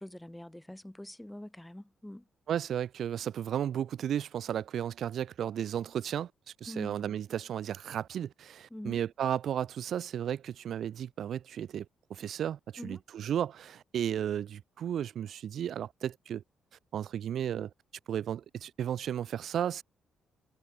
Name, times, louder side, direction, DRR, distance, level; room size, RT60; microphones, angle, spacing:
voice 1, 0.0-2.2 6.7-7.2 8.7-9.0 12.8-13.0, left 1 dB, 5° left, 2.4 m, -44 dB
voice 2, 2.5-6.3 6.6-16.4 16.9-17.7 18.1-19.8, right 9 dB, 65° right, 0.3 m, -34 dB
cardioid pair, 90°, 0 cm